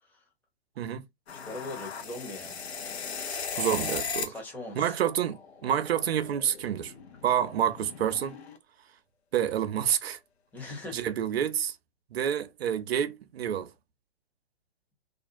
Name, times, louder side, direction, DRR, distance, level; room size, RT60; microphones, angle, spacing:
sound 1, 1.3-4.5 4.7-8.6, left 5 dB, 80° left, 0.8 m, -38 dB
voice 1, 1.3-2.6 4.2-5.0 10.5-11.0, left 2 dB, 5° left, 0.8 m, -40 dB
voice 2, 3.5-4.3 4.8-6.9 7.2-8.3 9.3-10.2 10.9-11.8 12.1-13.7, right 9 dB, 75° right, 0.5 m, -28 dB
2.5 x 2.2 x 2.5 m
hypercardioid pair, 125°, 32 cm